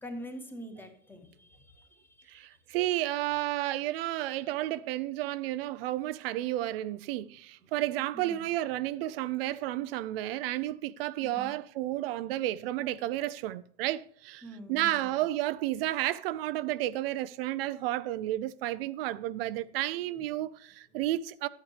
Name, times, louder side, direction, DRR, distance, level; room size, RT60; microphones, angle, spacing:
voice 1, 0.0-2.6 8.1-8.5 11.2-11.5 14.4-15.2, equal, 5° left, 1.2 m, -45 dB
voice 2, 2.3-14.4 14.7-21.5, right 15 dB, 75° right, 0.5 m, -32 dB
11.5 x 8.9 x 3.2 m
supercardioid pair, 155°, 29 cm